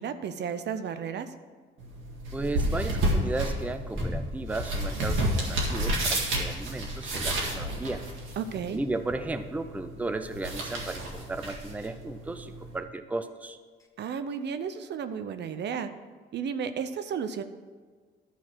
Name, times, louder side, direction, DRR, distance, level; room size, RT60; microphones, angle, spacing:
voice 1, 0.0-1.3 8.4-8.8 14.0-15.9 16.3-17.4, right 7 dB, 60° right, 10 dB, 0.6 m, -33 dB
sound 1, 1.8-12.8, right 1 dB, 90° right, 1.8 m, -31 dB
voice 2, 2.3-8.0 8.5-13.6, right 2 dB, 5° right, 9 dB, 0.5 m, -35 dB
sound 2, 3.9-4.6 5.2-5.8 7.1-7.8 9.1-9.5 11.0-11.4 13.8-13.9, left 2 dB, 15° left, 1.1 m, -38 dB
12.0 x 4.1 x 6.2 m, 1.5 s
cardioid pair, 90°, 20 cm